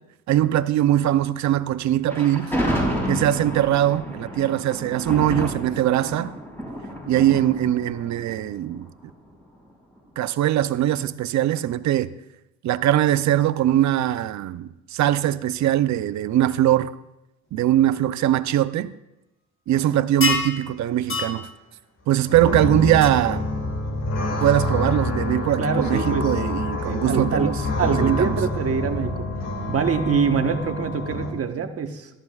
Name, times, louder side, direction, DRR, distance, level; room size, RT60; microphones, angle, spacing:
voice 1, 0.3-2.5 3.1-6.3 7.1-8.9 10.2-12.1 12.6-16.9 17.5-18.9 19.7-21.5 22.1-23.5 24.4-28.4, right 12 dB, 65° right, 0.6 m, -21 dB
Thunder, 2.1-9.3, equal, 5° left, 5.1 m, -30 dB
sound 1, 20.2-20.6 21.1-21.3 23.0-23.1, left 3 dB, 45° left, 1.4 m, -23 dB
sound 2, 22.3-31.3, left 2 dB, 60° left, 2.6 m, -27 dB
voice 2, 25.6-26.3 26.8-29.2 29.7-32.1, right 6 dB, 50° right, 1.2 m, -24 dB
17.5 x 13.5 x 2.4 m
cardioid pair, 90°, 30 cm